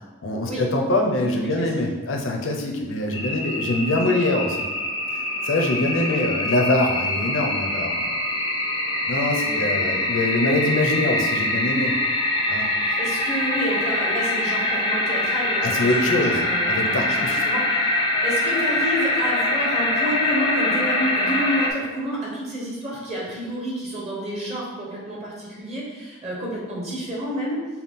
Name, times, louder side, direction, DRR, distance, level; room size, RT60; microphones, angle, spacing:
voice 1, 0.2-4.7 5.4-8.3 9.1-12.0 12.5-12.6 15.6-17.4, left 2 dB, 75° left, 2 dB, 0.6 m, -24 dB
voice 2, 1.0-1.7 6.1-6.2 9.4-9.6 13.0-27.6, equal, 35° right, -4 dB, 1.0 m, -30 dB
sound 1, 3.1-21.7, left 1 dB, 20° left, 0.5 m, -24 dB
5.7 x 2.3 x 3.6 m, 1.2 s
head